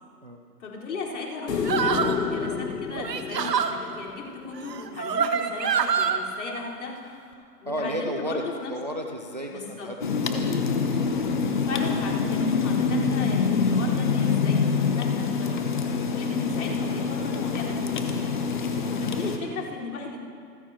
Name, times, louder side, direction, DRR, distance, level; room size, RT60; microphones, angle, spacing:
voice 1, 0.6-8.7 9.5-9.9 11.5-18.3 18.9-20.2, left 3 dB, 60° left, -5 dB, 4.3 m, -36 dB
sound 1, 1.5-4.7 7.3-7.4, left 5 dB, 75° left, 1.9 m, -30 dB
sound 2, 1.6-2.2 2.9-3.7 4.7-6.2, right 7 dB, 80° right, 1.3 m, -25 dB
voice 2, 7.7-8.4 8.7-10.5, equal, 30° right, 3 dB, 0.5 m, -33 dB
sound 3, 10.0-19.4, left 5 dB, 30° left, 0.8 m, -25 dB
27.5 x 14.5 x 2.9 m, 2.4 s
hypercardioid pair, 165°, 49 cm